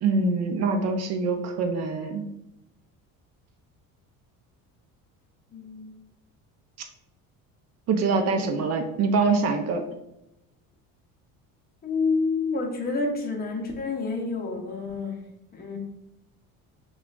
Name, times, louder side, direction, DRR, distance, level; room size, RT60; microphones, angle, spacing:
voice 1, 0.0-2.2 7.9-9.8, right 4 dB, 50° right, 6 dB, 0.5 m, -24 dB
voice 2, 5.5-5.9 8.4-8.5 11.8-15.2 15.5-15.8, left 4 dB, 25° left, 1 dB, 0.7 m, -28 dB
5.8 x 2.3 x 2.3 m, 0.84 s
cardioid pair, 135°, 35 cm